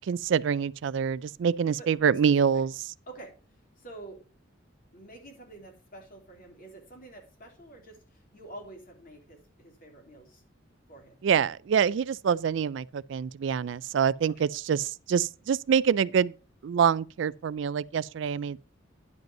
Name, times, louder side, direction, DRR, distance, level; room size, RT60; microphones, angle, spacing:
voice 1, 0.1-2.7 11.2-16.3 16.6-18.6, right 7 dB, 70° right, 0.3 m, -26 dB
voice 2, 3.8-4.2 4.9-10.4 10.9-11.2 14.2-14.5, right 2 dB, 45° left, 3.4 m, -48 dB
10.5 x 5.3 x 5.3 m
head